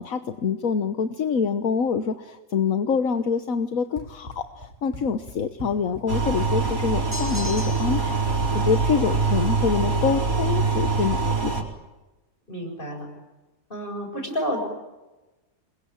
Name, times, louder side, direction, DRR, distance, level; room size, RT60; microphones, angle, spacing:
voice 1, 0.0-11.7, left 6 dB, 75° left, 9 dB, 1.6 m, -26 dB
Run, 4.0-11.0, equal, 35° right, 6.1 m, -41 dB
sound 1, 6.1-11.6, right 4 dB, 75° right, 5.3 m, -24 dB
sound 2, 7.1-8.1, left 3 dB, 10° right, 4.2 m, -36 dB
voice 2, 12.5-13.1 13.7-14.6, equal, 40° left, 3 dB, 7.8 m, -30 dB
27.5 x 22.5 x 8.8 m, 1.1 s
omnidirectional pair, 1.4 m